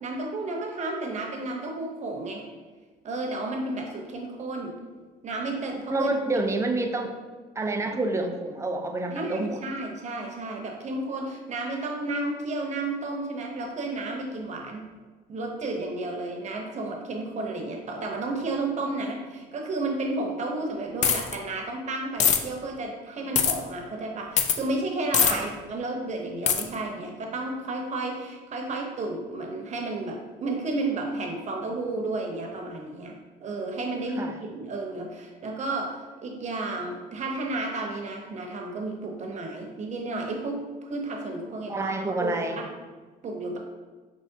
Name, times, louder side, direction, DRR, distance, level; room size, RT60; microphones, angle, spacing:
voice 1, 0.0-2.5 3.0-4.7 5.2-6.1 7.9-8.0 9.1-14.8 15.3-42.7 43.2-43.6, right 2 dB, 45° right, 2 dB, 0.8 m, -32 dB
voice 2, 5.9-7.1 7.6-9.6 25.3-25.4 34.2-34.3 41.7-42.6, right 2 dB, 15° right, 4 dB, 0.4 m, -28 dB
sound 1, 21.0-21.3 22.2-22.4 23.3-23.5 24.4-24.6 25.1-25.3 26.5-26.6, left 8 dB, 45° left, 0.4 m, -21 dB
5.5 x 3.0 x 2.8 m, 1.4 s
cardioid pair, 110°, 17 cm